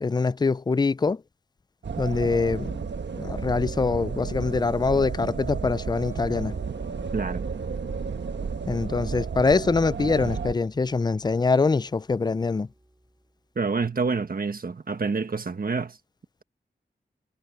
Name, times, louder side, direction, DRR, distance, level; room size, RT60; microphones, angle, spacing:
voice 1, 0.0-1.2 2.0-2.8 3.1-6.5 8.7-12.7, left 4 dB, 25° left, 0.4 m, -24 dB
sound 1, 1.8-10.5, right 6 dB, 80° right, 1.3 m, -32 dB
sound 2, 5.9-13.4, right 1 dB, 15° right, 3.7 m, -50 dB
voice 2, 7.1-7.4 13.5-16.0, right 4 dB, 55° right, 1.5 m, -27 dB
wide cardioid pair, 85°, 18 cm